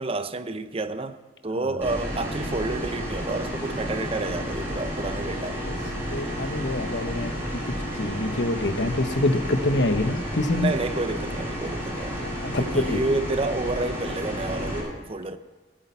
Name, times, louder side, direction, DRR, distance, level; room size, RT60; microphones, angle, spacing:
voice 1, 0.0-5.6 10.6-12.3 12.6-15.4, right 2 dB, 35° right, 0.7 m, -30 dB
sound 1, 1.8-14.8, equal, 15° right, 5.3 m, -31 dB
voice 2, 6.1-7.6 8.0-10.7 12.2-13.0, left 2 dB, 80° left, 1.1 m, -26 dB
17.0 x 8.9 x 5.7 m
head